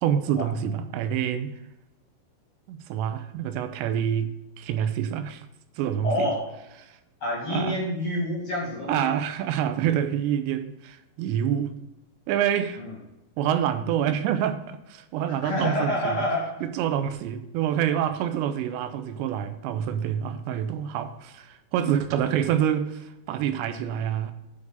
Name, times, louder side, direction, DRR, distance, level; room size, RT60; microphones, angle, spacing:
voice 1, 0.0-1.5 2.7-5.5 5.8-6.3 6.8-7.0 7.5-7.8 8.9-11.8 12.3-12.8 13.4-16.2 16.6-24.3, right 9 dB, 85° right, 9 dB, 2.8 m, -27 dB
voice 2, 6.0-6.5 7.2-9.1 12.8-12.9 15.4-16.6, left 1 dB, 40° left, -3 dB, 2.3 m, -28 dB
8.7 x 4.8 x 6.8 m, 0.93 s
omnidirectional pair, 5.1 m